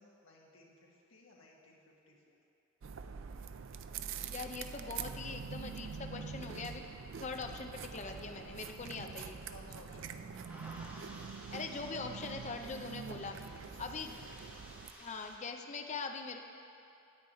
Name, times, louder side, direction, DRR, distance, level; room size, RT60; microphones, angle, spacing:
voice 1, 0.0-1.8 2.1-2.4 9.5-10.4 13.2-14.2, left 2 dB, 75° left, -2 dB, 1.6 m, -58 dB
sound 1, 2.8-14.9, right 6 dB, 65° right, 0.4 m, -45 dB
voice 2, 4.3-9.4 11.5-13.3 13.8-14.2 15.0-16.4, left 4 dB, 35° left, 4 dB, 0.6 m, -42 dB
sound 2, 10.1-15.4, right 1 dB, 10° right, 0.9 m, -55 dB
9.6 x 8.8 x 4.3 m, 2.5 s
head